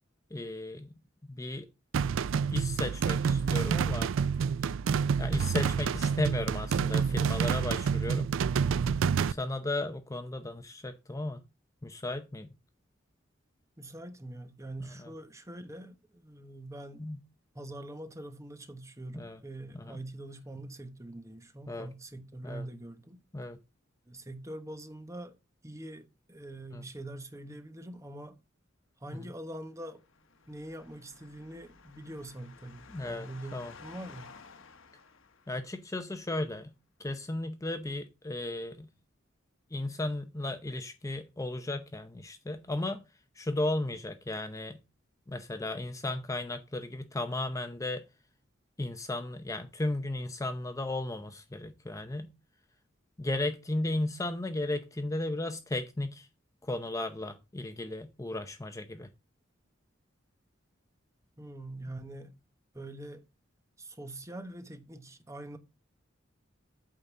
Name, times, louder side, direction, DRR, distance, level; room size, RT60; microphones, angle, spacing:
voice 1, 0.3-0.9 1.2-1.7 2.5-4.1 5.2-8.3 9.3-11.4 11.8-12.5 15.0-15.1 17.0-17.2 19.1-19.4 19.7-20.0 21.7-21.9 22.4-22.6 23.3-23.6 26.7-26.8 29.1-29.2 32.9-33.7 35.5-36.7 37.0-38.9 39.7-43.0 43.4-44.8 45.3-48.0 48.8-52.3 53.2-56.3 56.6-59.1, left 2 dB, 15° left, 0.6 m, -35 dB
sound 1, 1.9-9.3, right 6 dB, 75° right, 0.4 m, -28 dB
voice 2, 13.8-17.0 17.5-23.2 24.1-25.4 25.6-28.4 29.0-30.0 30.5-34.3 61.4-62.3 62.7-63.2 63.8-65.6, right 1 dB, 15° right, 1.1 m, -44 dB
sound 2, 29.6-36.0, left 5 dB, 80° left, 1.1 m, -54 dB
8.8 x 4.0 x 7.2 m
head